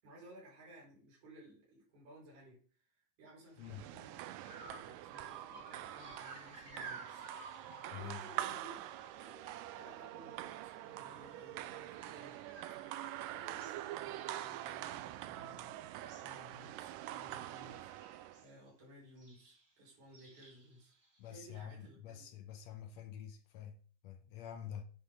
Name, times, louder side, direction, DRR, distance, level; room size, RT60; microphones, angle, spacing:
voice 1, 0.0-7.3 7.9-8.8 9.1-12.5 13.3-20.9 21.3-22.3, right 1 dB, 55° right, 6.3 m, -58 dB
sound 1, 3.6-18.5, right 14 dB, 80° right, 2.1 m, -45 dB
sound 2, 3.7-3.9 4.4-10.5 10.8-15.6 15.9-16.4 16.7-17.0 17.3-18.5 19.2-19.7 20.1-21.4, right 2 dB, 20° right, 2.0 m, -55 dB
voice 2, 21.2-24.8, left 9 dB, 70° left, 1.7 m, -48 dB
9.7 x 8.8 x 3.8 m
omnidirectional pair, 4.0 m